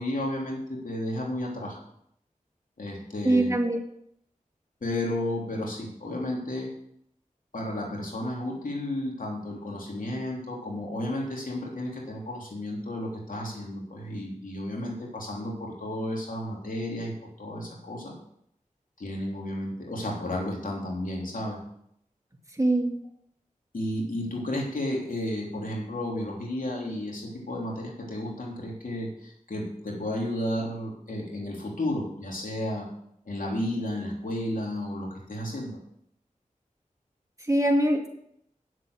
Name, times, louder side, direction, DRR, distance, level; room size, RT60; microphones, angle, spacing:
voice 1, 0.0-1.8 2.8-3.7 4.8-6.7 7.5-18.2 19.0-21.6 23.7-32.9 33.2-35.8, left 1 dB, 75° left, -2 dB, 3.3 m, -32 dB
voice 2, 3.3-3.8 22.6-23.0 37.5-38.1, right 1 dB, 25° right, 2 dB, 2.2 m, -22 dB
9.6 x 7.8 x 6.4 m, 0.72 s
cardioid pair, 40°, 14 cm